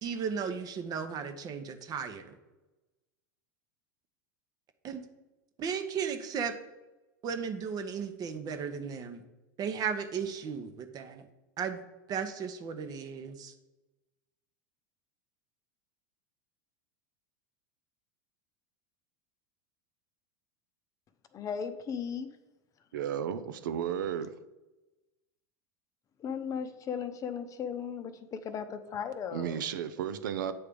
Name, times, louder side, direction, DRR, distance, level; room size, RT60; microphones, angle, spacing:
voice 1, 0.0-2.4 4.8-5.0 5.6-6.5 7.2-9.2 9.6-11.3 11.6-11.8 12.1-13.5, right 6 dB, 40° right, 0.8 m, -35 dB
voice 2, 21.3-22.3 26.2-29.6, left 7 dB, 35° left, 0.7 m, -36 dB
voice 3, 22.9-24.3 29.3-30.5, right 9 dB, 85° right, 0.5 m, -33 dB
8.6 x 3.3 x 5.1 m
hypercardioid pair, 110°, 10 cm